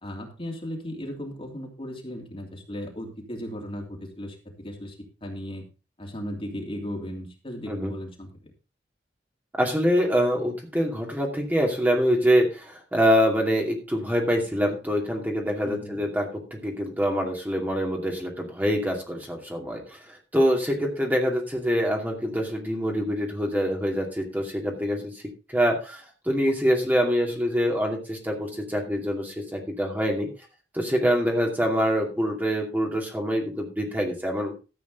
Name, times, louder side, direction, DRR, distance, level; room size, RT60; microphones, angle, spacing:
voice 1, 0.0-5.6 6.0-8.5 15.6-16.0, equal, 30° left, 1 dB, 2.8 m, -36 dB
voice 2, 9.6-25.1 25.5-30.3 30.7-34.5, equal, 10° right, 1 dB, 2.5 m, -25 dB
13.5 x 8.5 x 3.9 m, 0.30 s
head